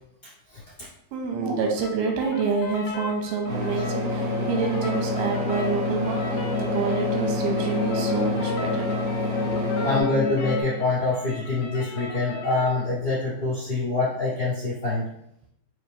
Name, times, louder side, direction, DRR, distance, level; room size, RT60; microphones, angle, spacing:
voice 1, 1.1-8.8 9.5-9.6, right 4 dB, 90° right, 2 dB, 2.6 m, -27 dB
sound 1, 1.8-12.8, left 6 dB, 85° left, 2.4 m, -38 dB
sound 2, 3.5-10.0, equal, 70° right, 1.4 m, -29 dB
sound 3, 3.9-10.6, left 4 dB, 70° left, 2.1 m, -29 dB
voice 2, 9.8-15.1, left 3 dB, 40° left, -11 dB, 1.4 m, -25 dB
5.9 x 2.5 x 3.4 m, 0.76 s
omnidirectional pair, 4.4 m